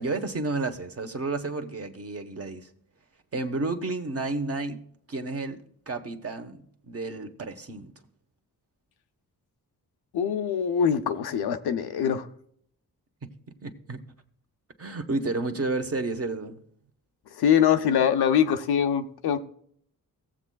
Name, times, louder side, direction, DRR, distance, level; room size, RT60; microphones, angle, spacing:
voice 1, 0.0-2.7 3.3-4.8 5.1-7.9 13.6-14.0 14.8-16.6, right 3 dB, 40° right, 1.1 m, -31 dB
voice 2, 10.1-12.3 17.3-19.4, left 8 dB, 90° left, 0.7 m, -23 dB
18.0 x 7.3 x 2.3 m
cardioid pair, 70°, 37 cm